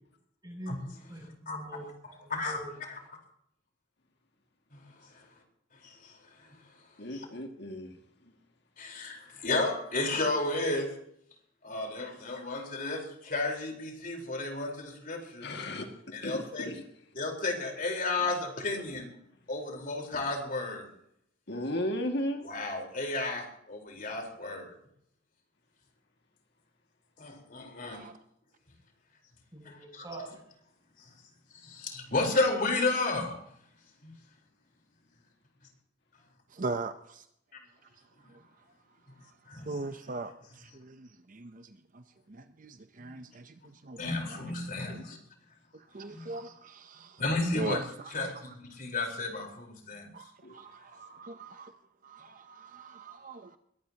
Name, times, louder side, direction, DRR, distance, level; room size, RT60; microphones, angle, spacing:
voice 1, 0.4-2.8 29.5-30.4, right 1 dB, 20° right, 0 dB, 7.8 m, -44 dB
voice 2, 2.3-2.6 2.9-3.0 4.7-5.2 5.8-6.2 6.4-6.6 7.1-7.3 8.8-10.9 11.6-15.5 16.1-16.7 17.1-19.1 19.5-20.8 22.5-24.7 27.2-28.1 29.6-30.0 31.0-31.1 31.6-33.4 34.0-34.1 37.5-37.6 39.5-39.7 44.0-45.2 46.1-46.2 47.2-47.8 48.1-50.1, left 2 dB, 45° left, 2 dB, 4.4 m, -33 dB
voice 3, 7.0-8.0 8.2-8.3 15.4-16.8 18.2-18.3 18.9-19.0 21.5-22.5 45.0-45.1 50.4-50.6, left 1 dB, 60° left, 3 dB, 2.2 m, -35 dB
voice 4, 36.5-37.3 38.3-38.4 39.3-44.5 44.9-45.0 45.7-47.2 47.5-48.1 48.5-48.6 50.1-51.8 52.0-53.6, right 3 dB, 45° right, 9 dB, 0.8 m, -41 dB
22.0 x 18.0 x 2.9 m, 0.71 s
head